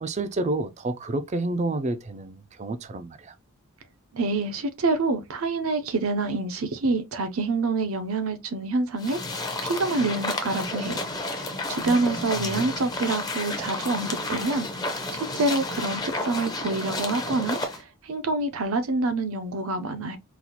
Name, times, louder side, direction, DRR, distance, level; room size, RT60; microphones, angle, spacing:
voice 1, 0.0-3.3 11.8-12.7, right 2 dB, 30° right, 0.3 m, -30 dB
voice 2, 4.1-20.2, right 3 dB, 70° right, 0.6 m, -27 dB
sound 1, 9.0-17.8, left 2 dB, 20° left, 0.6 m, -31 dB
4.0 x 2.4 x 2.8 m
head